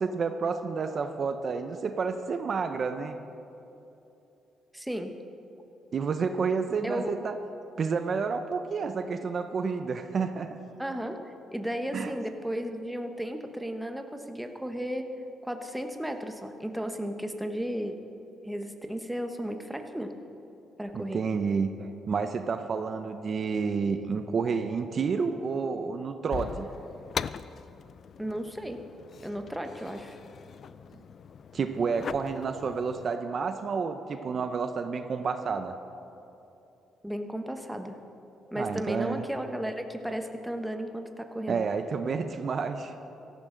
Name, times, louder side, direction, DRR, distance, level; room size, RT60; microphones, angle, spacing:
voice 1, 0.0-3.2 5.9-7.3 7.8-10.6 11.9-12.1 20.9-26.7 31.5-35.7 38.6-39.2 41.5-42.9, right 5 dB, 50° right, 8 dB, 0.7 m, -30 dB
voice 2, 4.7-5.1 6.8-7.1 10.8-15.1 15.4-18.0 18.4-20.1 20.8-21.2 28.2-28.8 29.2-30.2 37.0-38.0 38.5-41.7, equal, 5° right, 5 dB, 1.0 m, -34 dB
sound 1, 26.3-33.1, left 7 dB, 55° left, 0.3 m, -41 dB
16.5 x 14.0 x 3.9 m, 2.9 s
cardioid pair, 90°, 0 cm